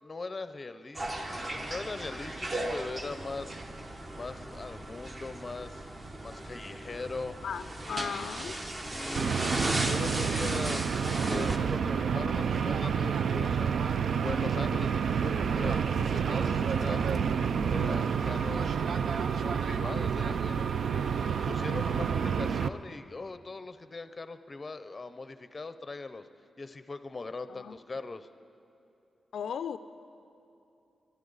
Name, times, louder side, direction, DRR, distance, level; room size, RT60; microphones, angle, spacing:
voice 1, 0.0-3.6 4.1-5.9 6.2-7.4 8.9-13.7 14.2-17.3 17.7-18.8 19.4-26.3 26.6-28.3, left 3 dB, 30° left, 11 dB, 0.6 m, -40 dB
sound 1, 1.0-11.6, right 1 dB, 30° right, 1.0 m, -36 dB
voice 2, 7.4-8.6 27.5-27.7 29.3-29.8, left 7 dB, 80° left, 12 dB, 0.3 m, -36 dB
sound 2, 9.2-22.7, right 7 dB, 70° right, 0.4 m, -29 dB
21.5 x 13.0 x 4.0 m, 2.8 s
wide cardioid pair, 120°, 0 cm